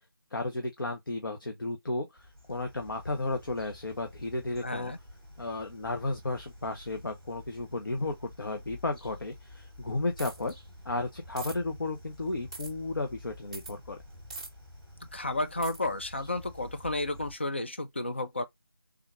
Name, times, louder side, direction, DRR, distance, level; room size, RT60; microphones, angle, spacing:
voice 1, 0.3-2.1 2.5-4.9 5.4-10.5 10.8-14.0, left 2 dB, 60° left, 0.8 m, -33 dB
sound 1, 2.2-17.4, left 1 dB, 5° left, 0.9 m, -50 dB
voice 2, 4.6-5.0 15.1-18.4, left 2 dB, 30° left, 0.3 m, -32 dB
sound 2, 10.2-10.5 11.4-11.6 12.5-12.7 13.5-13.7 14.3-14.5 15.6-15.8, right 3 dB, 15° right, 0.6 m, -41 dB
3.6 x 2.4 x 2.9 m
figure-of-eight pair, 165°, 13 cm